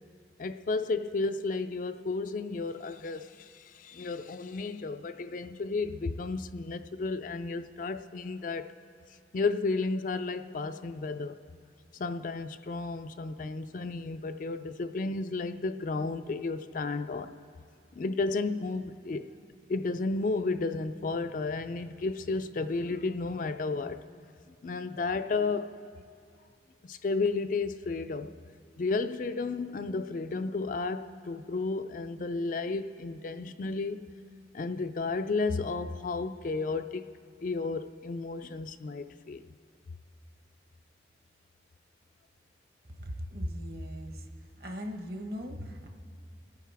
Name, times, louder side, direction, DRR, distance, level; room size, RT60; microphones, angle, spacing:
voice 1, 0.4-8.7 9.3-11.4 11.9-17.3 17.9-19.3 19.7-24.2 24.6-25.8 26.8-28.4 28.8-34.0 34.5-37.1 37.4-39.4, left 3 dB, 45° left, 0.4 m, -32 dB
voice 2, 43.0-44.2 44.6-45.9, equal, 55° right, 1.1 m, -38 dB
26.0 x 9.5 x 3.4 m
head